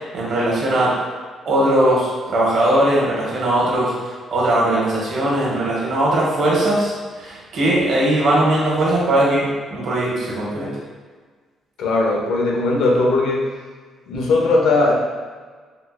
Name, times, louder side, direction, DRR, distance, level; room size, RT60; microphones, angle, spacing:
voice 1, 0.1-1.0 1.4-10.7, right 1 dB, 65° right, -5 dB, 1.0 m, -19 dB
voice 2, 11.8-13.5 14.1-14.9, left 2 dB, 80° left, -1 dB, 0.6 m, -18 dB
3.7 x 2.5 x 2.5 m, 1.5 s
cardioid pair, 130°, 0 cm